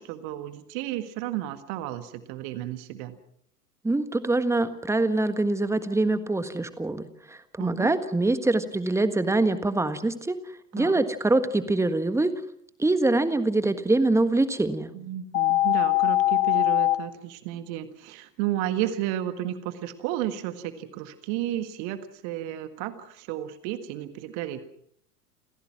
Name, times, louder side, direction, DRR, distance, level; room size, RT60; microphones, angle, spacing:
voice 1, 0.0-3.2 7.6-7.9 10.8-11.0 14.9-24.6, right 12 dB, 45° right, 10 dB, 1.7 m, -32 dB
voice 2, 3.8-10.4 10.7-12.3 12.8-14.9, right 2 dB, 5° right, 11 dB, 1.5 m, -24 dB
sound 1, 15.3-16.9, left 16 dB, 50° left, 1.8 m, -21 dB
29.0 x 16.0 x 6.0 m, 0.71 s
figure-of-eight pair, 85°, 46 cm